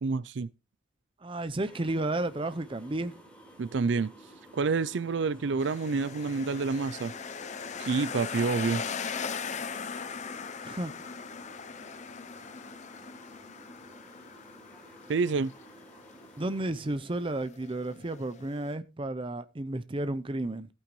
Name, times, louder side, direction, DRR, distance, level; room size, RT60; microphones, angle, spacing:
voice 1, 0.0-0.5 3.6-4.1 4.5-7.1 7.8-8.8 15.1-15.5, right 4 dB, 70° right, 0.4 m, -28 dB
voice 2, 1.2-3.1 10.6-10.9 16.4-20.7, right 2 dB, 25° right, 0.6 m, -32 dB
sound 1, 1.7-16.7, equal, 5° left, 3.9 m, -53 dB
sound 2, 5.6-18.7, left 6 dB, 40° left, 0.6 m, -40 dB
14.5 x 9.0 x 3.1 m
head